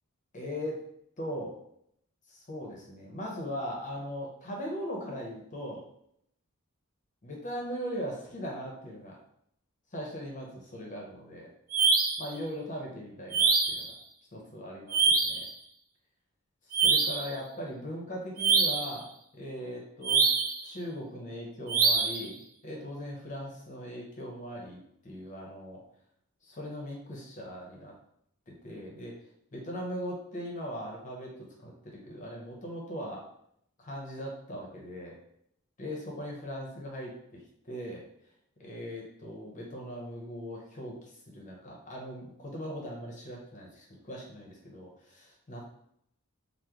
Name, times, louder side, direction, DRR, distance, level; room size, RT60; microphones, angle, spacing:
voice 1, 0.3-0.8 1.2-1.5 2.3-5.8 7.2-9.2 9.9-11.5 12.2-13.9 14.3-15.5 16.7-19.1 19.3-20.3 20.6-25.8 26.4-27.9 28.5-29.1 29.5-31.3 31.6-33.2 33.8-35.2 35.8-38.0 38.6-45.7, equal, 35° left, -2 dB, 0.7 m, -39 dB
sound 1, 11.7-12.3 13.3-13.9 14.9-15.5 16.7-17.3 18.4-18.9 20.0-20.6 21.7-22.2, right 4 dB, 40° right, 0.4 m, -24 dB
3.0 x 2.0 x 3.6 m, 0.72 s
head